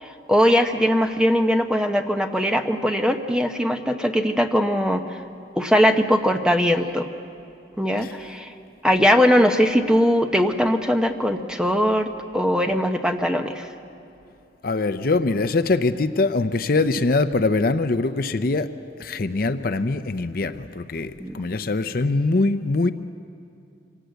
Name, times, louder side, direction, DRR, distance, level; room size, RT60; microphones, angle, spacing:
voice 1, 0.0-5.2 5.6-7.1 7.8-8.5 8.8-13.7 21.2-21.4, equal, 5° right, 5 dB, 0.9 m, -20 dB
voice 2, 14.6-18.7 19.0-22.9, left 3 dB, 50° left, 11 dB, 0.6 m, -23 dB
25.5 x 18.0 x 8.1 m, 2.6 s
head